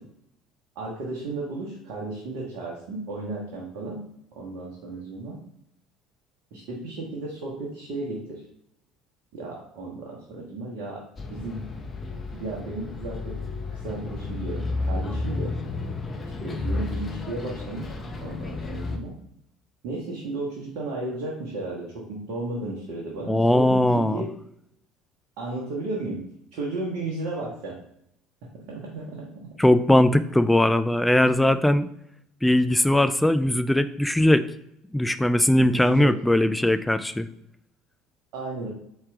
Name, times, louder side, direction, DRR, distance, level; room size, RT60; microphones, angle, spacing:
voice 1, 0.7-4.0 4.4-5.4 6.5-8.4 9.3-11.0 11.3-11.6 12.3-13.3 13.7-15.5 16.4-17.9 18.2-19.1 19.8-24.3 25.4-26.2 26.5-27.8 28.7-29.3 35.7-36.1 38.3-38.7, right 2 dB, 60° right, -3 dB, 1.1 m, -34 dB
Bus, 11.2-19.0, left 3 dB, 30° left, 0.7 m, -32 dB
voice 2, 23.3-24.2 29.6-31.9 32.4-34.5 34.9-37.3, left 1 dB, 5° left, 11 dB, 0.3 m, -20 dB
4.4 x 3.3 x 3.5 m, 0.74 s
figure-of-eight pair, 65°, 0 cm